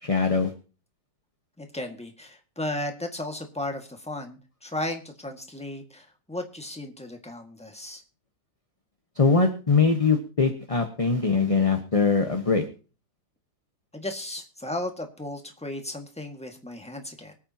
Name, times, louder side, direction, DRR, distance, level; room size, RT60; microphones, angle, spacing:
voice 1, 0.0-0.5 9.1-12.7, left 4 dB, 25° left, 5 dB, 1.0 m, -22 dB
voice 2, 1.6-8.0 13.9-17.3, left 1 dB, 5° left, 4 dB, 1.6 m, -35 dB
24.5 x 8.7 x 2.9 m, 0.35 s
omnidirectional pair, 2.0 m